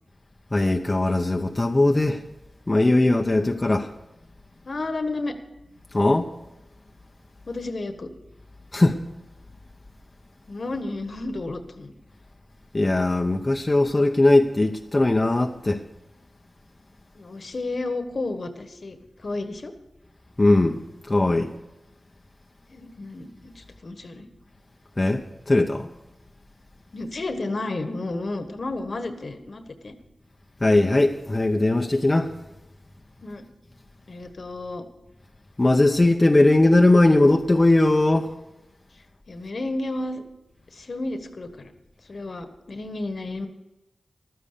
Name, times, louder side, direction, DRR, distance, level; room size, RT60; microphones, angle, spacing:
voice 1, 0.5-2.2 2.7-3.9 5.9-6.3 8.7-9.0 12.7-15.8 20.4-20.8 21.1-21.5 25.0-25.9 30.6-32.3 35.6-38.3, left 2 dB, 35° left, 0.8 m, -19 dB
voice 2, 4.6-5.4 7.5-8.1 10.5-11.9 17.1-19.7 22.7-24.3 26.9-29.9 33.2-33.4 34.1-34.8 39.3-40.2 40.7-41.7 42.0-43.5, left 2 dB, 65° left, 1.3 m, -32 dB
12.5 x 9.9 x 6.7 m
cardioid pair, 40°, 0 cm